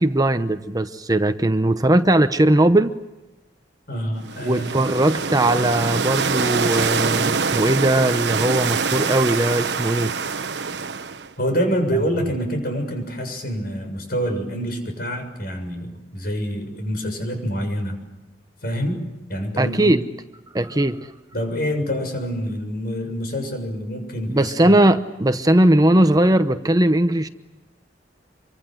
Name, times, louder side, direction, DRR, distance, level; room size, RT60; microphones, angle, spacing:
voice 1, 0.0-2.9 4.4-10.1 19.6-20.0 20.5-21.0 24.3-27.3, right 1 dB, 20° right, 10 dB, 0.9 m, -19 dB
voice 2, 3.9-4.8 11.4-18.0 18.6-19.0 19.3-19.9 21.3-24.8, equal, 55° left, 6 dB, 7.0 m, -26 dB
sound 1, 4.2-11.3, right 5 dB, 70° right, 1.1 m, -24 dB
27.0 x 24.5 x 7.9 m, 1.0 s
head